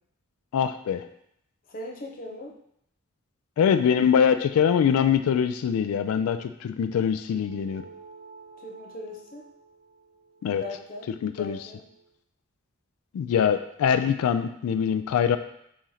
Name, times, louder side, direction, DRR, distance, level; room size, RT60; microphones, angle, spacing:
voice 1, 0.5-1.0 3.6-7.8 10.4-10.6 11.2-11.6 13.1-15.4, left 7 dB, 90° left, 14 dB, 0.3 m, -23 dB
voice 2, 1.7-2.5 8.6-9.4 10.6-11.1 11.4-11.8, left 1 dB, 40° left, -1 dB, 0.7 m, -39 dB
sound 1, 7.3-12.1, right 4 dB, 65° right, 0.9 m, -51 dB
4.1 x 3.1 x 3.8 m, 0.74 s
head